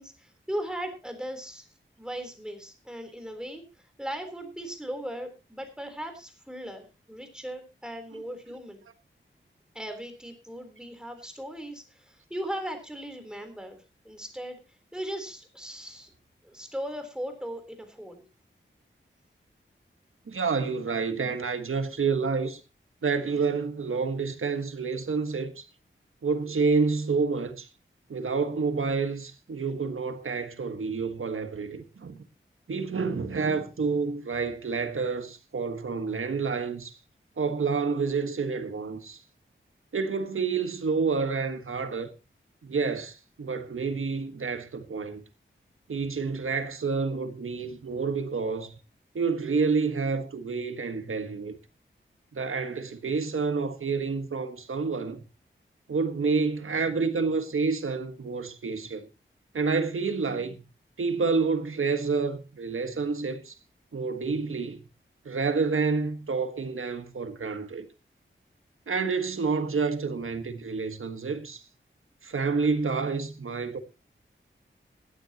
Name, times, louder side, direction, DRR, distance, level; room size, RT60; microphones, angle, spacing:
voice 1, 0.0-1.7 2.0-8.8 9.7-14.6 14.9-16.1 16.4-18.2, equal, 5° right, 3.7 m, -38 dB
voice 2, 20.3-22.6 23.0-25.7 26.2-27.7 28.1-32.2 32.7-37.0 37.4-39.2 39.9-42.1 42.6-45.2 45.9-48.8 49.2-51.5 52.3-55.2 55.9-59.1 59.5-60.6 61.0-63.6 63.9-64.8 65.3-67.9 68.9-71.6 72.2-73.8, right 4 dB, 85° right, 1.6 m, -29 dB
17.0 x 13.0 x 2.9 m
wide cardioid pair, 85°, 21 cm